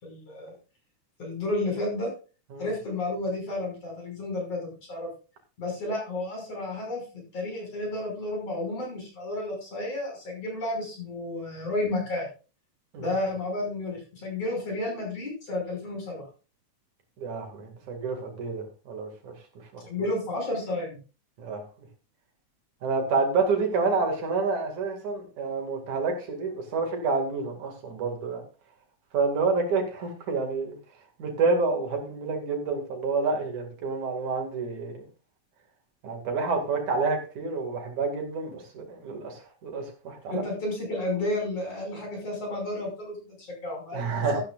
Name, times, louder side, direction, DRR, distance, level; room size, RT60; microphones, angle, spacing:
voice 1, 0.0-0.5 1.2-2.1 2.6-5.1 5.6-7.0 7.3-12.3 13.0-16.2 19.8-21.0 40.3-44.4, left 2 dB, 50° left, 0 dB, 6.9 m, -31 dB
voice 2, 17.2-19.3 21.4-21.6 22.8-28.4 29.1-30.8 31.2-35.1 36.0-40.4 43.9-44.4, right 4 dB, 75° right, 3 dB, 3.6 m, -28 dB
13.5 x 12.5 x 2.5 m, 0.34 s
omnidirectional pair, 3.5 m